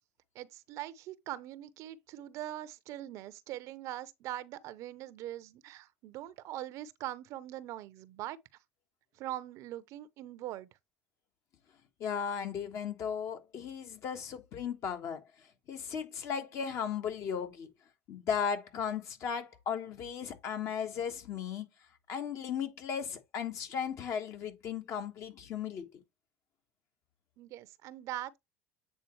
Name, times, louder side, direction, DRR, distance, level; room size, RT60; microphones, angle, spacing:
voice 1, 0.3-8.4 9.1-10.7 27.4-28.4, right 13 dB, 60° right, 0.6 m, -42 dB
voice 2, 12.0-15.2 15.7-17.7 18.1-21.7 22.1-25.8, left 7 dB, 55° left, 1.4 m, -36 dB
8.2 x 3.8 x 3.2 m
supercardioid pair, 90°, 6 cm